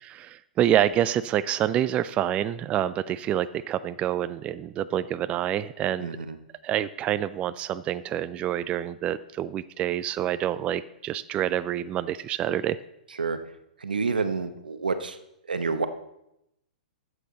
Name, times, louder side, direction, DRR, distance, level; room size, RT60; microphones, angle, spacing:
voice 1, 0.0-6.1 6.6-12.8, right 11 dB, 25° right, 15 dB, 0.3 m, -27 dB
voice 2, 6.0-6.4 13.2-13.4 13.8-15.2 15.5-15.9, right 4 dB, 85° right, 10 dB, 0.9 m, -28 dB
13.0 x 7.8 x 3.9 m, 0.84 s
hypercardioid pair, 115°, 5 cm